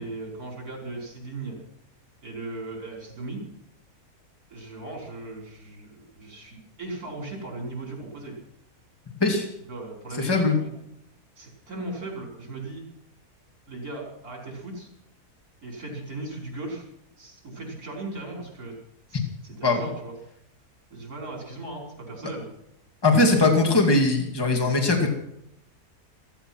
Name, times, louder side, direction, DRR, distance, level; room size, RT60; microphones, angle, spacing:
voice 1, 0.0-1.6 2.2-3.5 4.5-8.4 9.7-10.8 11.4-12.8 13.7-14.9 15.6-16.9 17.2-18.8 19.1-20.1 20.9-22.5 23.1-23.5, right 2 dB, 70° right, 0 dB, 5.8 m, -37 dB
voice 2, 10.2-10.6 19.6-19.9 23.0-25.1, left 3 dB, 15° left, 2 dB, 2.4 m, -20 dB
15.5 x 14.5 x 6.2 m, 0.78 s
omnidirectional pair, 1.7 m